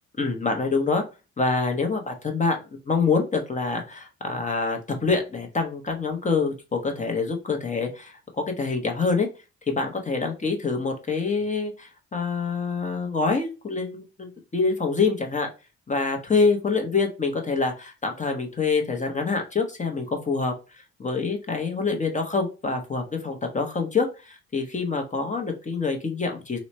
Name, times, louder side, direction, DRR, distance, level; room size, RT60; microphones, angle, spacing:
voice 1, 0.2-1.0 1.4-2.6 2.9-9.3 9.7-15.5 15.9-26.6, left 4 dB, 25° left, 3 dB, 0.8 m, -26 dB
3.1 x 2.1 x 4.1 m, 0.30 s
cardioid pair, 90°, 30 cm